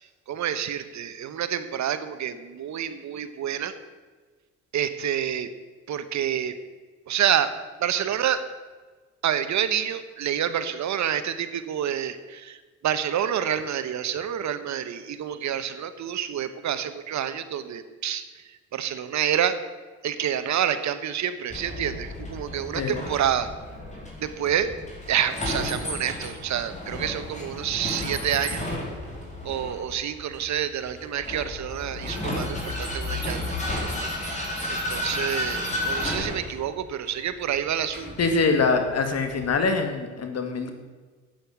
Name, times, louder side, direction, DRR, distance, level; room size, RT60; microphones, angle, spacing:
voice 1, 0.3-3.7 4.7-5.5 5.9-6.5 7.1-7.5 7.8-8.4 9.2-12.6 12.8-18.2 18.7-19.6 20.0-23.5 24.2-24.7 25.1-28.6 29.4-33.6 34.7-38.1, right 9 dB, 65° right, 11 dB, 1.2 m, -28 dB
Vehicle, 21.5-39.6, left 1 dB, 25° left, 4.2 m, -33 dB
voice 2, 38.2-40.7, left 4 dB, 55° left, 6 dB, 2.2 m, -24 dB
11.0 x 9.0 x 8.1 m, 1.4 s
cardioid pair, 90°, 30 cm